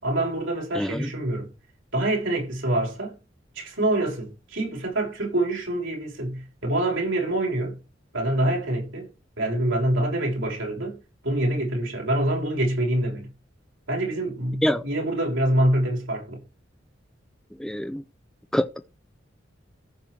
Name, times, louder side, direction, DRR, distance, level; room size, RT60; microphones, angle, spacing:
voice 1, 0.0-1.5 1.9-3.2 3.5-7.8 8.1-9.1 9.4-11.0 11.2-13.3 13.9-16.4, right 1 dB, 85° right, 6.1 m, -25 dB
voice 2, 0.7-1.1 14.6-14.8 17.6-18.0 18.5-18.9, equal, 5° left, 0.5 m, -25 dB
14.5 x 5.9 x 4.6 m
head